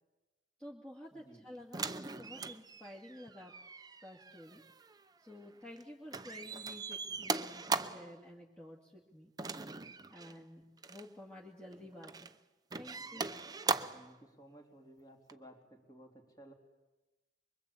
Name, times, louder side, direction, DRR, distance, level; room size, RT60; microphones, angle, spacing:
voice 1, 0.6-3.5 4.0-4.6 5.2-9.3 10.1-10.6 10.9-12.3 12.7-13.3, left 1 dB, 5° left, -4 dB, 2.4 m, -51 dB
voice 2, 1.1-1.5 13.0-13.3 13.9-16.5, right 1 dB, 20° left, 3 dB, 3.7 m, -57 dB
sound 1, 1.7-5.8 6.1-8.1 9.4-10.4 10.8-11.1 11.7-12.3 12.7-14.1 15.3-15.4, right 4 dB, 20° right, 0.7 m, -40 dB
24.5 x 23.0 x 8.6 m, 1.1 s
head